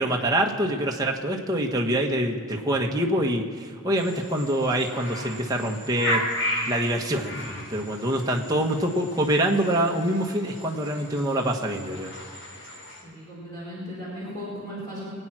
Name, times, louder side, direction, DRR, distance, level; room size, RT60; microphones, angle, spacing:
voice 1, 0.0-6.2 6.6-12.1, right 1 dB, 15° right, 0 dB, 1.1 m, -25 dB
sound 1, 3.9-13.0, left 1 dB, 70° left, 4.3 m, -35 dB
voice 2, 13.0-15.1, equal, 15° left, -9 dB, 4.5 m, -36 dB
22.5 x 9.0 x 6.1 m, 2.3 s
head